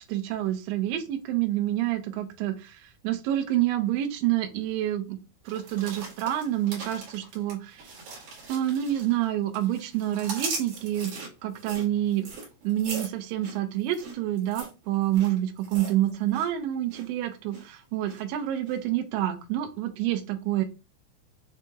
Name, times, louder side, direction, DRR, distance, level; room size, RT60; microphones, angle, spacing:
voice 1, 0.1-5.2 5.5-7.9 8.5-11.1 11.4-12.3 12.6-20.6, right 12 dB, 85° right, 5 dB, 2.6 m, -28 dB
sound 1, 5.5-9.3 9.5-16.5 16.7-17.1 17.5-18.2 18.7-18.8, right 3 dB, 55° right, 2.7 m, -40 dB
7.2 x 2.9 x 2.3 m, 0.30 s
omnidirectional pair, 5.8 m